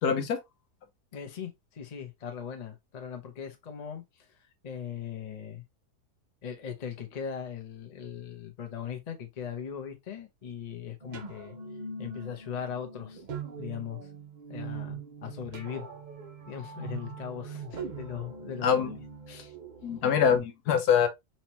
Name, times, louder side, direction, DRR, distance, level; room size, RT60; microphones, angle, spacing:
voice 1, 0.0-0.4 18.6-18.9 19.8-21.1, left 7 dB, 75° left, 1.3 m, -24 dB
voice 2, 1.1-5.6 6.4-11.6 12.0-13.2 13.6-14.1 14.5-15.9 16.5-18.9 19.3-19.5, left 8 dB, 35° left, 0.6 m, -39 dB
sound 1, 11.0-20.4, right 4 dB, 50° right, 0.5 m, -42 dB
4.3 x 2.9 x 2.9 m
omnidirectional pair, 1.7 m